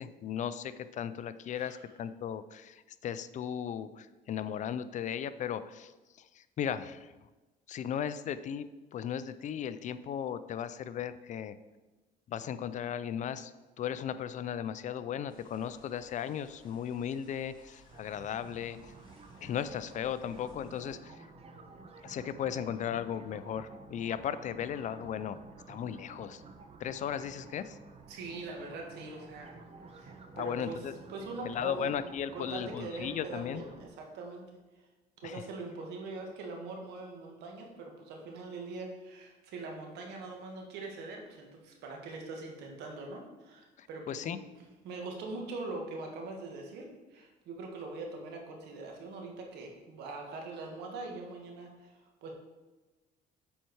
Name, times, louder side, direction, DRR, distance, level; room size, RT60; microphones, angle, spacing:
voice 1, 0.0-5.9 6.2-7.1 7.7-11.6 12.3-13.5 13.8-18.9 19.4-21.2 22.0-25.4 25.7-26.4 26.8-27.8 30.3-30.9 31.4-33.6 35.2-35.4 43.8-44.4, left 8 dB, 45° left, 13 dB, 0.4 m, -36 dB
sound 1, 15.3-21.0, left 1 dB, 25° left, 1.9 m, -61 dB
sound 2, 17.9-33.9, right 4 dB, 35° right, 0.8 m, -52 dB
voice 2, 28.1-29.5 29.8-30.8 31.1-31.9 32.3-34.4 35.2-44.4 44.8-52.3, right 3 dB, 80° right, 1 dB, 1.5 m, -42 dB
7.2 x 4.5 x 4.6 m, 1.2 s
cardioid pair, 110°, 17 cm